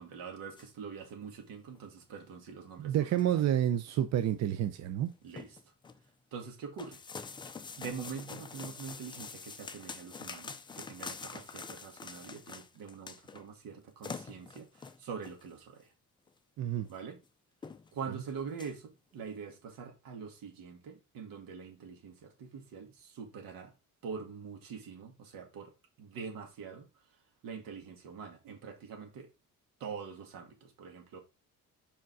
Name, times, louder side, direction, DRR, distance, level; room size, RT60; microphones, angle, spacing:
voice 1, 0.0-3.4 5.2-5.6 6.3-7.0 7.8-15.9 16.9-17.2 17.9-23.7 24.0-25.7 26.0-26.9 27.4-29.3 29.8-31.2, right 6 dB, 80° right, 2.2 m, -44 dB
sound 1, 0.6-0.7 1.2-1.4 1.7-1.8 2.4-2.5 2.9-3.4 3.8-3.9 4.2-4.3 4.6-4.8 5.1-6.0 6.8-13.5 13.7-13.8 14.0-15.4 16.3-16.4 16.9-17.0 17.2-17.3 17.6-18.0 18.3-18.7, left 5 dB, 15° left, 0.3 m, -45 dB
voice 2, 2.8-5.1 16.6-16.9, right 11 dB, 55° right, 0.6 m, -29 dB
5.2 x 5.1 x 4.7 m
cardioid pair, 175°, 33 cm